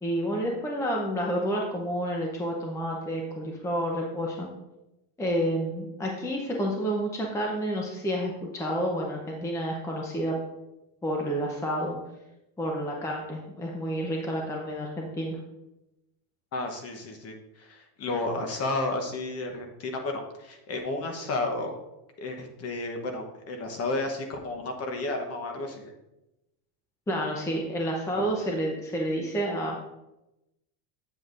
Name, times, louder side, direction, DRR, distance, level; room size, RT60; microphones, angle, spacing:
voice 1, 0.0-4.5 5.2-10.4 11.0-11.9 12.6-15.4 27.1-29.9, equal, 5° left, -1 dB, 0.6 m, -29 dB
voice 2, 16.5-21.7 22.2-25.8, left 2 dB, 30° left, 4 dB, 1.0 m, -32 dB
7.8 x 7.8 x 2.5 m, 0.93 s
supercardioid pair, 140°, 49 cm